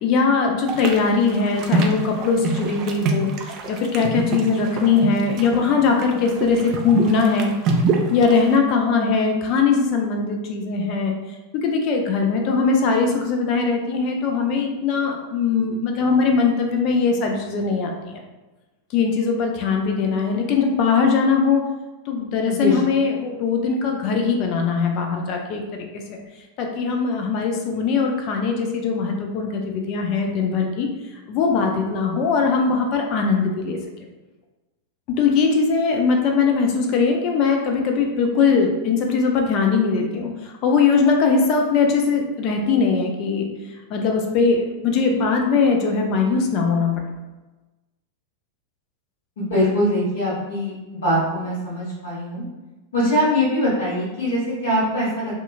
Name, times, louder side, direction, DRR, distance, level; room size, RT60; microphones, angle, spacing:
voice 1, 0.0-3.3 3.7-7.5 8.1-11.1 11.5-18.2 18.9-21.6 22.1-26.2 26.6-30.9 31.3-33.8 35.2-43.5 43.9-46.9, left 5 dB, 40° left, 2 dB, 0.4 m, -20 dB
sound 1, 0.7-8.6, right 3 dB, 35° right, 0.3 m, -26 dB
voice 2, 22.5-22.8 49.4-52.4 52.9-55.4, equal, 55° left, -8 dB, 1.1 m, -22 dB
2.7 x 2.3 x 2.5 m, 1.1 s
figure-of-eight pair, 90°, 0 cm